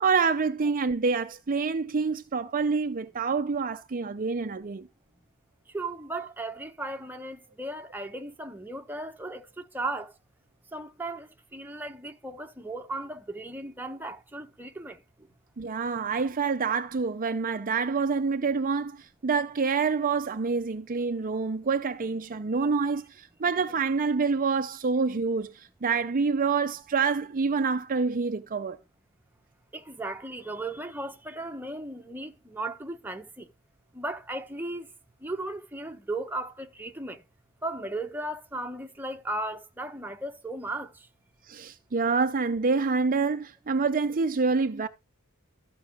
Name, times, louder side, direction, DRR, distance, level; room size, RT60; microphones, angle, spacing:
voice 1, 0.0-4.9 15.6-28.8 41.5-44.9, right 4 dB, 40° right, 0.6 m, -27 dB
voice 2, 5.7-10.1 10.7-15.0 29.7-33.5 33.9-34.9 35.2-37.2 37.6-40.9, right 2 dB, 10° right, 1.0 m, -36 dB
14.0 x 6.1 x 3.6 m
head